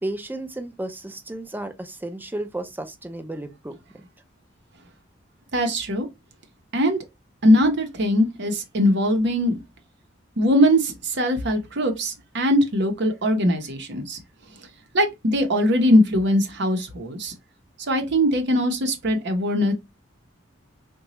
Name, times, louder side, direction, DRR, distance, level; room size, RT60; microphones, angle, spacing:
voice 1, 0.0-4.0, right 1 dB, 10° right, 0.5 m, -33 dB
voice 2, 5.5-6.1 6.7-7.0 7.4-9.6 10.4-14.2 14.9-17.3 17.9-19.7, equal, 60° right, 0.8 m, -21 dB
3.8 x 2.3 x 2.9 m
head